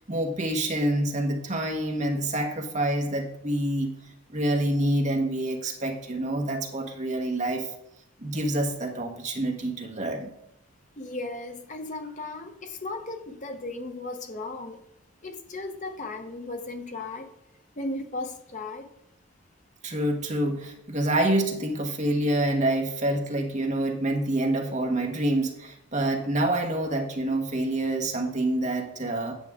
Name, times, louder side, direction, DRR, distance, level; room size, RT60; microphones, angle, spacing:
voice 1, 0.0-3.9 4.3-7.7 8.2-10.3 19.8-29.3, right 1 dB, 35° right, 3 dB, 1.1 m, -27 dB
voice 2, 11.0-14.8 15.2-17.3 17.8-18.9, left 2 dB, 35° left, 5 dB, 0.8 m, -36 dB
9.0 x 7.6 x 3.6 m, 0.80 s
head